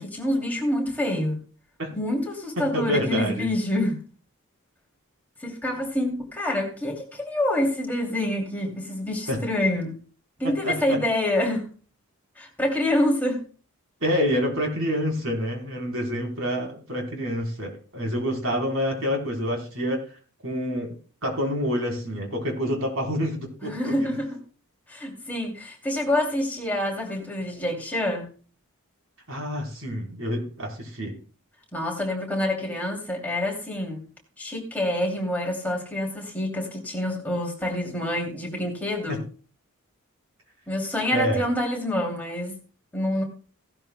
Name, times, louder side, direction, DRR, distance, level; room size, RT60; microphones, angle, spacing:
voice 1, 0.0-1.4 1.9-4.0 5.4-10.0 10.4-11.7 12.4-13.4 23.6-24.4 24.9-28.3 31.7-34.0 34.4-39.2 40.7-42.6 42.9-43.2, left 1 dB, 10° left, 2.7 m, -27 dB
voice 2, 2.7-3.5 9.3-9.4 10.6-11.0 14.0-21.0 21.2-24.2 29.3-31.2 39.1-39.2 41.1-41.4, equal, 60° right, 3.9 m, -27 dB
17.0 x 12.5 x 2.2 m
head